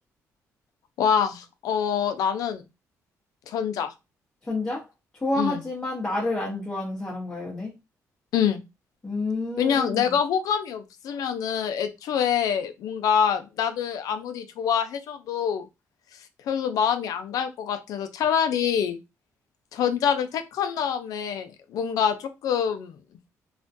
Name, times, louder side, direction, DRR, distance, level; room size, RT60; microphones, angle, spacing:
voice 1, 1.0-2.6 3.5-3.9 5.4-5.6 8.3-8.6 9.6-15.7 16.5-19.0 19.7-23.0, left 8 dB, 75° left, 9 dB, 0.4 m, -25 dB
voice 2, 4.4-4.8 5.1-7.7 9.0-10.2, left 2 dB, 15° left, -4 dB, 0.7 m, -29 dB
2.4 x 2.1 x 2.5 m, 0.25 s
cardioid pair, 85°, 6 cm